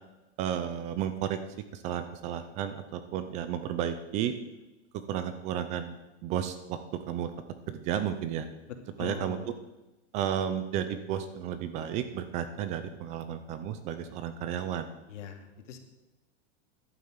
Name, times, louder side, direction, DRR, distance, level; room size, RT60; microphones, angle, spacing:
voice 1, 0.4-1.4 1.7-4.3 5.1-5.9 6.2-7.3 7.7-8.5 9.0-9.5 10.1-14.9, right 9 dB, 20° right, 10 dB, 0.5 m, -32 dB
voice 2, 8.7-9.5 15.1-15.8, left 7 dB, 80° left, 5 dB, 2.7 m, -42 dB
11.5 x 8.6 x 9.0 m, 1.0 s
supercardioid pair, 175°, 36 cm